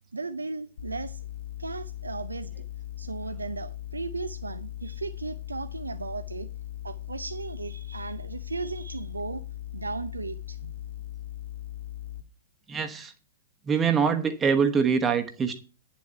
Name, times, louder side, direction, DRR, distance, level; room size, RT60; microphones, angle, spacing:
voice 1, 0.1-1.2 1.6-2.6 3.0-6.5 6.8-9.4 9.7-10.7, right 3 dB, 75° right, 0.6 m, -36 dB
sound 1, 0.8-12.2, left 13 dB, 50° left, 0.9 m, -39 dB
voice 2, 12.7-13.1 13.7-15.6, right 6 dB, 15° right, 1.1 m, -24 dB
10.0 x 7.4 x 5.7 m
figure-of-eight pair, 110°, 0 cm